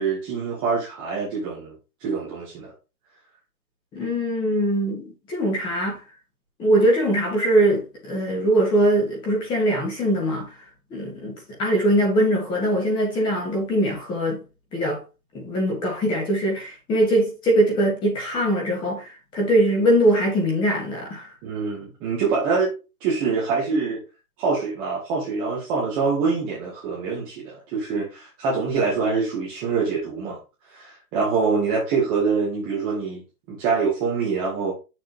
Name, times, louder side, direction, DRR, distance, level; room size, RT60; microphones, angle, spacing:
voice 1, 0.0-2.7 21.4-22.7 23.0-24.0 24.4-30.4 30.7-33.2 33.5-34.7, right 5 dB, 10° right, 0.9 m, -25 dB
voice 2, 3.9-6.0 6.6-10.5 10.9-14.4 14.7-15.0 15.3-19.1 19.3-21.3, right 1 dB, 10° left, 1.6 m, -22 dB
7.4 x 6.6 x 2.9 m
hypercardioid pair, 175°, 48 cm